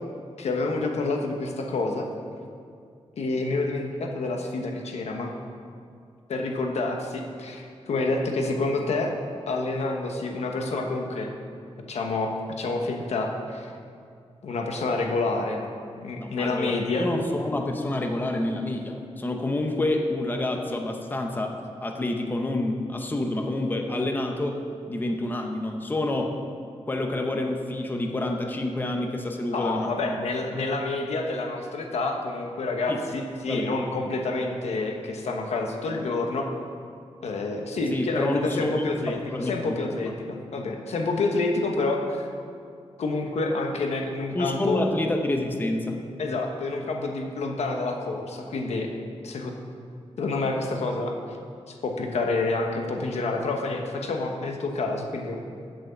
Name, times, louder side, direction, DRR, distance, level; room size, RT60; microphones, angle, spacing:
voice 1, 0.4-2.1 3.2-5.3 6.3-9.1 9.5-11.3 11.9-13.7 14.4-15.6 16.0-17.0 29.5-36.5 37.2-42.2 43.0-44.8 46.2-48.9 49.2-49.5 50.2-51.1 51.7-55.4, left 3 dB, 85° left, 2 dB, 1.1 m, -28 dB
voice 2, 16.2-21.5 21.8-24.6 24.9-26.3 26.9-30.2 32.9-33.0 33.4-33.7 37.9-40.1 44.3-46.0, left 1 dB, 15° left, 3 dB, 0.7 m, -28 dB
8.0 x 7.7 x 6.9 m, 2.3 s
wide cardioid pair, 165°, 11 cm